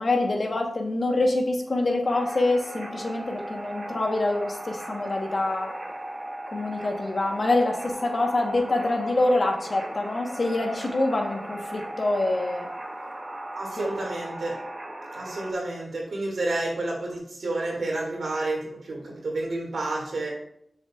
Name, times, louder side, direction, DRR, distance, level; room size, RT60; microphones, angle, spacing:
voice 1, 0.0-5.7 6.5-12.7 13.8-13.9, left 2 dB, 55° left, 2 dB, 1.2 m, -25 dB
sound 1, 2.1-15.5, right 1 dB, 40° right, 2.3 m, -37 dB
voice 2, 13.5-14.6 15.1-20.3, right 2 dB, 85° right, -2 dB, 2.2 m, -30 dB
7.5 x 6.5 x 2.4 m, 0.73 s
wide cardioid pair, 65°, 0 cm